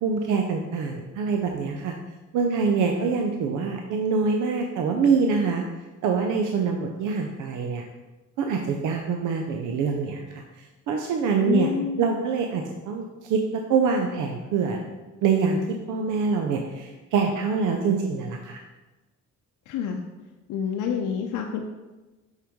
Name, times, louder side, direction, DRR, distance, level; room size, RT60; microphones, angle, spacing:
voice 1, 0.0-1.9 2.3-5.6 6.0-7.9 8.4-10.4 10.9-11.7 12.0-14.8 15.2-18.6, right 5 dB, 90° right, 3 dB, 0.6 m, -25 dB
voice 2, 11.4-12.2 19.7-20.0 20.5-21.6, left 7 dB, 85° left, 2 dB, 0.6 m, -28 dB
5.8 x 5.7 x 3.6 m, 1.1 s
cardioid pair, 90°, 30 cm